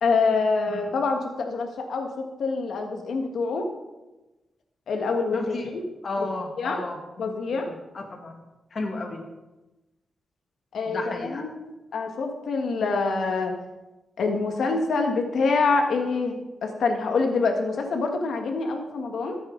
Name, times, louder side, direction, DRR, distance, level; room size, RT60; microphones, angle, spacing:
voice 1, 0.0-3.7 4.9-5.8 6.2-6.3 6.6-6.8 7.2-7.7 10.7-13.6 14.2-19.4, left 4 dB, 75° left, 4 dB, 1.6 m, -26 dB
voice 2, 5.3-5.7 6.0-8.4 8.7-9.2 10.9-11.4, left 3 dB, 50° left, 3 dB, 1.9 m, -33 dB
13.5 x 8.7 x 3.9 m, 1.1 s
wide cardioid pair, 125°, 0 cm